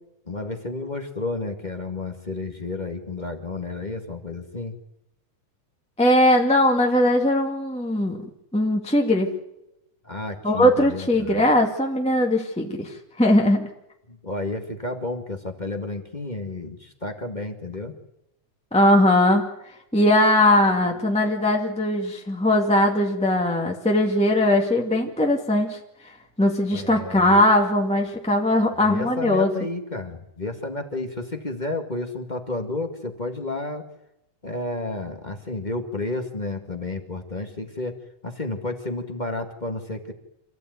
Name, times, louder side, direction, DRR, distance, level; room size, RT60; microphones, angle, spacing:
voice 1, 0.3-4.8 10.0-11.4 14.1-17.9 26.7-27.4 28.8-33.8 34.4-38.0 38.2-40.1, left 2 dB, 20° left, 3 dB, 1.5 m, -31 dB
voice 2, 6.0-9.3 10.4-12.9 13.2-13.7 18.7-19.5 19.9-25.8 26.4-29.5, left 1 dB, 5° left, 1 dB, 1.6 m, -20 dB
27.5 x 15.5 x 9.5 m, 0.87 s
omnidirectional pair, 3.5 m